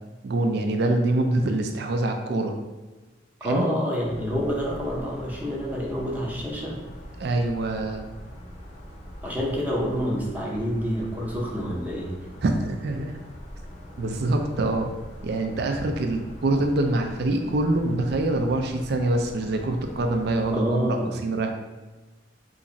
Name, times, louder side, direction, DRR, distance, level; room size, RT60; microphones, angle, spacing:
voice 1, 0.2-2.5 3.4-3.7 7.2-8.0 12.4-13.2 14.0-14.9 15.2-21.0 21.2-21.5, right 2 dB, 60° right, 4 dB, 0.4 m, -25 dB
voice 2, 3.4-6.8 9.2-12.1 20.5-21.2, equal, 10° right, -3 dB, 0.6 m, -28 dB
sound 1, 4.0-20.6, equal, 40° left, 0.6 m, -42 dB
2.9 x 2.5 x 3.9 m, 1.2 s
head